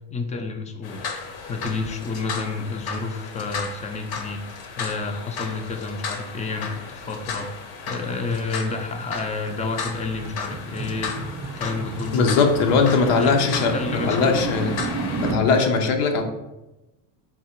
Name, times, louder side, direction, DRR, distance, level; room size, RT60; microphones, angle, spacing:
voice 1, 0.1-1.0 1.5-7.5 7.9-11.2 11.6-12.3 12.9-14.5, left 3 dB, 20° left, 6 dB, 0.3 m, -30 dB
sound 1, 0.8-15.3, left 5 dB, 55° left, 0.8 m, -34 dB
sound 2, 9.5-15.5, right 4 dB, 30° right, 0.5 m, -32 dB
voice 2, 12.1-14.8 15.3-16.2, left 4 dB, 90° left, 4 dB, 0.8 m, -20 dB
3.6 x 2.9 x 4.4 m, 0.99 s
cardioid pair, 115°, 44 cm